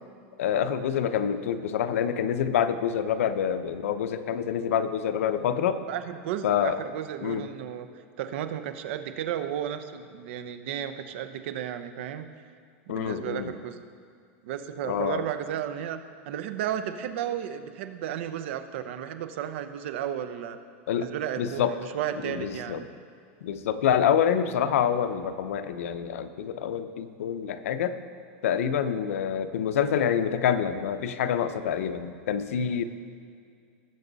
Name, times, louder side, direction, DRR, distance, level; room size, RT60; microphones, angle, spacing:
voice 1, 0.4-5.8 6.4-6.8 7.2-7.5 12.9-13.5 14.8-15.2 20.9-21.1 21.4-21.7 22.3-22.8 23.4-28.0 28.4-32.8, left 8 dB, 90° left, 10 dB, 0.7 m, -27 dB
voice 2, 5.8-7.9 8.2-12.3 12.9-13.8 14.4-16.0 16.3-20.6 21.0-22.9, right 10 dB, 60° right, 9 dB, 0.8 m, -33 dB
18.5 x 7.0 x 4.0 m, 2.2 s
supercardioid pair, 160°, 7 cm